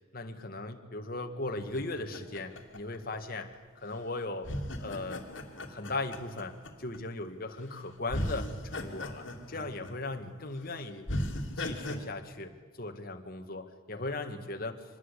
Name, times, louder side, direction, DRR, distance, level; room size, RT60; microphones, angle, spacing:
voice 1, 0.1-3.5 3.8-4.5 4.8-5.2 5.6-11.1 11.6-12.5 12.8-14.8, left 2 dB, 50° left, 5 dB, 2.1 m, -38 dB
sound 1, 1.6-3.5 4.4-7.0 7.6-7.8 8.1-10.2 10.5-10.6 11.1-12.0, left 1 dB, 70° left, 2.8 m, -37 dB
25.5 x 20.5 x 8.4 m, 1.5 s
head